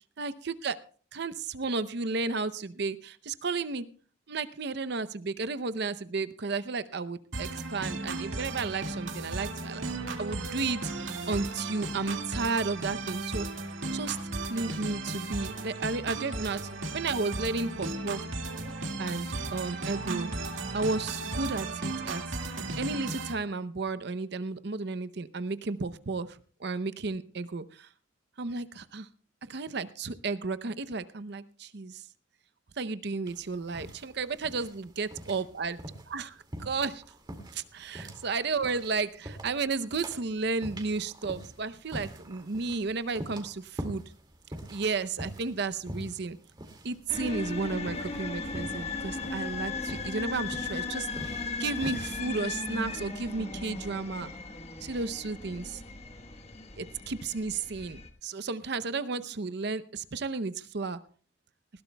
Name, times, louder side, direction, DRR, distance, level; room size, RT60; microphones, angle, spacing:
voice 1, 0.2-0.8 1.1-3.9 4.3-9.8 10.2-13.5 13.9-16.6 16.9-18.2 19.0-20.3 20.7-22.2 22.8-27.9 28.4-29.1 29.5-32.0 32.8-35.8 36.1-37.0 37.5-44.0 44.7-46.4 46.8-54.3 54.8-55.8 56.8-61.0, right 4 dB, 60° right, 14 dB, 0.7 m, -33 dB
sound 1, 7.3-23.3, right 3 dB, 90° right, 2.0 m, -35 dB
sound 2, 33.3-52.2, right 1 dB, 25° right, 2.2 m, -44 dB
sound 3, 47.1-58.1, left 3 dB, 35° left, 1.3 m, -37 dB
19.5 x 16.5 x 2.2 m, 0.42 s
head